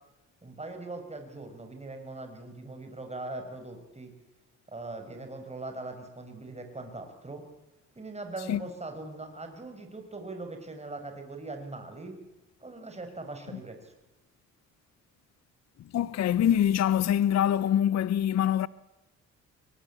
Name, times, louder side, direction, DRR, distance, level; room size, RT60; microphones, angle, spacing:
voice 1, 0.4-4.1 4.7-7.4 8.0-12.1 12.6-13.9, right 2 dB, 20° right, 5.9 m, -41 dB
voice 2, 15.9-18.7, left 10 dB, 55° left, 0.8 m, -24 dB
24.0 x 20.0 x 8.6 m
supercardioid pair, 70°, 32 cm